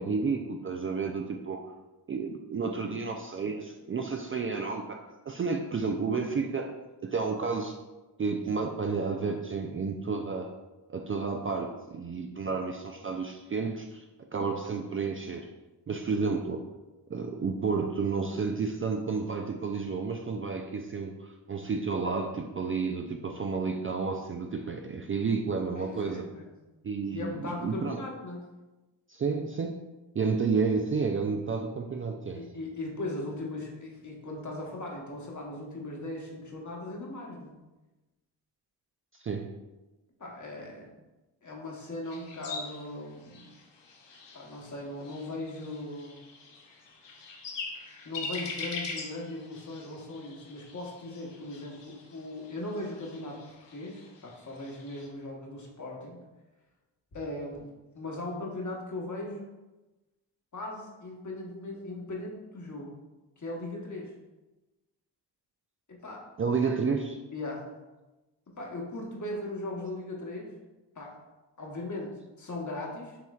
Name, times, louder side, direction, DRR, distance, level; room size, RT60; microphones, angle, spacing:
voice 1, 0.0-1.7 2.1-6.7 7.0-7.8 8.2-10.5 10.9-14.0 14.3-15.5 15.9-16.6 17.1-26.3 26.8-28.0 29.1-29.8 30.1-32.5 39.1-39.5 66.4-67.2, right 4 dB, 30° right, 3 dB, 0.4 m, -31 dB
voice 2, 25.8-26.5 27.1-28.4 32.3-37.5 40.2-40.9 41.4-43.5 44.3-46.2 48.0-56.2 57.1-57.7 57.9-59.5 60.5-63.0 63.4-64.1 65.9-66.3 66.6-66.7 67.3-67.7 68.5-70.5 70.9-71.2 71.6-73.2, left 2 dB, 45° left, -1 dB, 1.2 m, -38 dB
sound 1, 42.0-55.1, left 4 dB, 75° left, 0.8 m, -43 dB
5.9 x 3.1 x 2.4 m, 1.1 s
cardioid pair, 50°, 43 cm